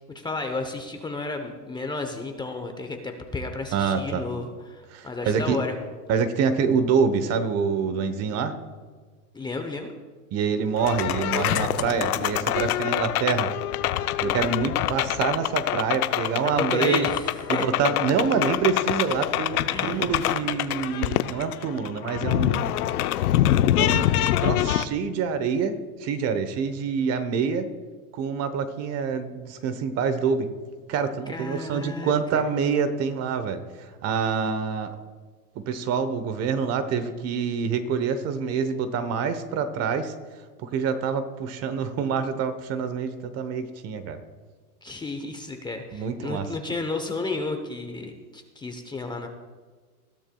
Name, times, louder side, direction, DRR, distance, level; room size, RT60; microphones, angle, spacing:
voice 1, 0.1-5.8 9.3-9.9 16.6-17.6 19.7-20.1 31.3-32.4 44.8-49.3, left 3 dB, 10° left, 5 dB, 0.9 m, -32 dB
voice 2, 3.7-4.2 4.9-5.6 6.1-8.6 10.3-13.5 14.2-17.1 17.5-22.7 23.8-27.7 28.1-30.5 30.9-34.9 35.5-40.1 40.6-44.2 45.9-46.5, right 6 dB, 35° right, 10 dB, 1.1 m, -26 dB
sound 1, 10.8-24.8, left 13 dB, 70° left, 0.8 m, -25 dB
20.0 x 12.5 x 2.3 m, 1.4 s
hypercardioid pair, 120°, 46 cm